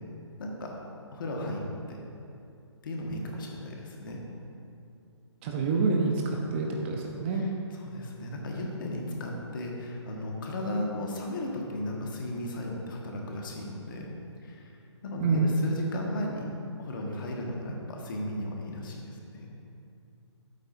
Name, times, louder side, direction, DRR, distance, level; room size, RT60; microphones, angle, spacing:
voice 1, 0.4-0.8 1.1-2.0 2.8-4.2 7.3-7.5 7.8-14.1 14.4-14.8 15.0-16.4 16.8-19.5, left 1 dB, 45° left, -1 dB, 1.6 m, -35 dB
voice 2, 5.4-7.4 15.2-15.5, right 4 dB, 25° right, 1 dB, 0.7 m, -27 dB
12.5 x 8.3 x 2.7 m, 2.6 s
figure-of-eight pair, 140°, 15 cm